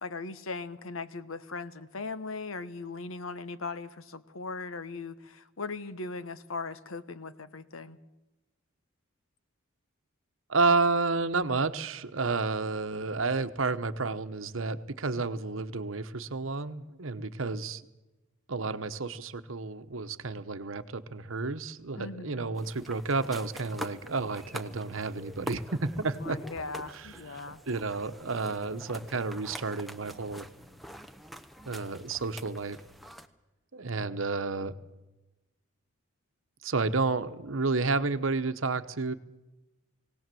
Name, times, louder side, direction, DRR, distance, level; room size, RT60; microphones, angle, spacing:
voice 1, 0.0-8.0 22.0-22.4 26.1-27.6, left 3 dB, 80° left, 13 dB, 1.1 m, -39 dB
voice 2, 10.5-17.8 18.5-26.4 26.9-27.4 27.7-30.5 31.7-32.8 33.7-34.8 36.6-39.1, right 3 dB, 75° right, 11 dB, 1.0 m, -31 dB
sound 1, 22.6-33.3, equal, ahead, 0.8 m, -45 dB
20.0 x 18.0 x 7.7 m, 1.1 s
head